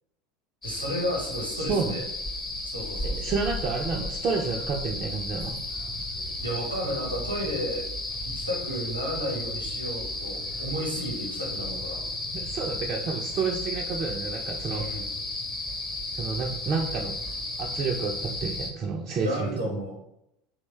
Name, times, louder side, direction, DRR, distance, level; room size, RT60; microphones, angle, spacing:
sound 1, 0.6-18.7, left 2 dB, 20° left, 0.7 m, -33 dB
voice 1, 0.6-2.0 2.7-3.3 6.4-7.8 8.2-12.0 14.7-15.2 19.2-19.9, equal, 85° right, -2 dB, 0.7 m, -32 dB
voice 2, 1.5-1.9 3.0-5.6 12.3-15.0 16.1-17.2 17.6-19.8, right 5 dB, 40° right, 1 dB, 0.3 m, -30 dB
2.9 x 2.1 x 3.2 m, 0.80 s
figure-of-eight pair, 75°, 0 cm